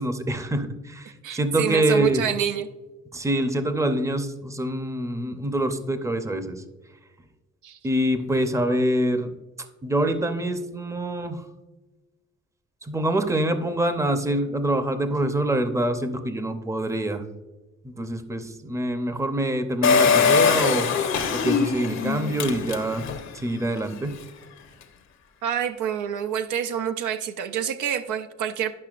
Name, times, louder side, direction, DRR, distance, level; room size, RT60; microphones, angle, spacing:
voice 1, 0.0-2.3 3.1-6.6 7.8-9.3 9.8-11.4 12.8-17.2 17.8-20.9 21.3-23.0 23.3-24.2, right 1 dB, 10° right, 8 dB, 0.7 m, -25 dB
voice 2, 1.2-2.7 7.6-7.8 25.4-28.7, right 9 dB, 80° right, 8 dB, 0.6 m, -27 dB
Engine, 19.8-23.3 23.8-23.9 24.0-24.1, left 6 dB, 65° left, 0.9 m, -22 dB
10.5 x 5.6 x 2.4 m, 1.2 s
cardioid pair, 90°, 30 cm